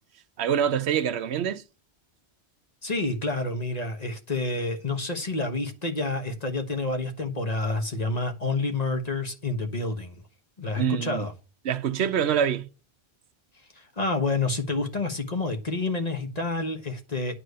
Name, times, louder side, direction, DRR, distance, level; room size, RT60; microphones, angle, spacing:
voice 1, 0.4-1.6 10.8-11.3 11.6-12.7, right 8 dB, 85° right, 1.0 m, -25 dB
voice 2, 2.8-10.2 10.6-11.3 13.7-17.4, left 3 dB, 40° left, 1.4 m, -29 dB
9.1 x 4.8 x 6.6 m
omnidirectional pair, 1.1 m